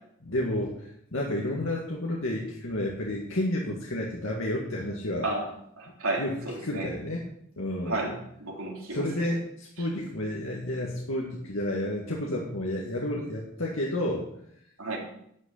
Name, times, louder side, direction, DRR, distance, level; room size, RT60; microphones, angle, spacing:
voice 1, 0.2-5.3 6.2-7.3 7.6-8.2 8.9-14.3, left 1 dB, 75° left, -2 dB, 1.9 m, -31 dB
voice 2, 5.8-6.9 7.9-9.3 14.8-15.0, right 2 dB, 85° right, -1 dB, 3.6 m, -32 dB
11.5 x 6.2 x 8.5 m, 0.72 s
head